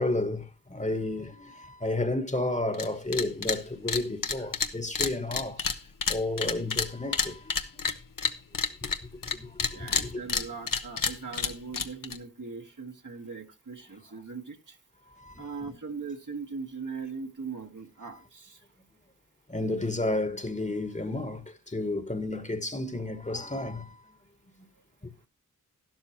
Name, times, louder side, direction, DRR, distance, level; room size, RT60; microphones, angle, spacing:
voice 1, 0.0-5.6 6.1-7.5 8.8-10.2 15.2-15.7 19.5-23.9 25.0-25.1, left 2 dB, 20° left, 1.4 m, -32 dB
sound 1, 2.7-2.9 3.1-3.6 3.9-9.3 9.6-12.2, left 5 dB, 75° left, 1.0 m, -29 dB
voice 2, 4.4-4.7 5.6-5.8 9.7-14.8 15.4-18.6, right 5 dB, 65° right, 1.8 m, -40 dB
12.0 x 12.0 x 3.0 m
wide cardioid pair, 65°, 34 cm